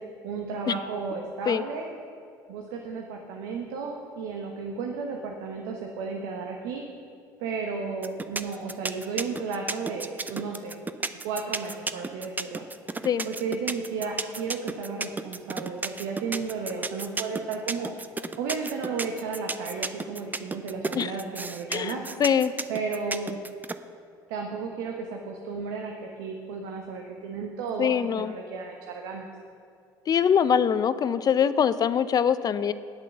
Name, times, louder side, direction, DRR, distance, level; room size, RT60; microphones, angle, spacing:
voice 1, 0.2-1.9 2.5-6.8 7.4-10.8 11.2-12.6 13.2-17.9 18.4-22.0 22.7-23.4 24.3-29.3, right 5 dB, 75° right, 1 dB, 1.1 m, -33 dB
sound 1, 8.0-23.7, right 3 dB, 15° right, 0.5 m, -32 dB
voice 2, 22.2-22.5 27.8-28.3 30.1-32.7, left 8 dB, 40° left, 14 dB, 0.6 m, -23 dB
9.2 x 8.3 x 6.8 m, 2.3 s
hypercardioid pair, 70°, 10 cm